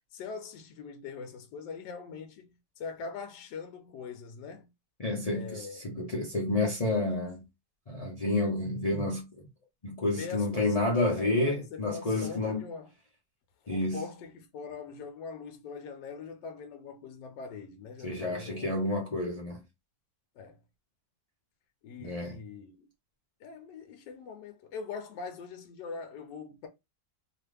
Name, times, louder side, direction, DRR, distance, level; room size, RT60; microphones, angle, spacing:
voice 1, 0.1-4.7 5.2-5.8 10.1-12.9 13.6-18.8 20.4-20.6 21.8-22.9 23.4-26.7, left 5 dB, 75° left, 1.2 m, -42 dB
voice 2, 5.0-7.4 7.9-9.4 9.8-12.6 13.7-14.0 18.0-19.6 22.0-22.4, left 2 dB, 50° left, 0.4 m, -30 dB
3.0 x 2.5 x 3.2 m
omnidirectional pair, 2.0 m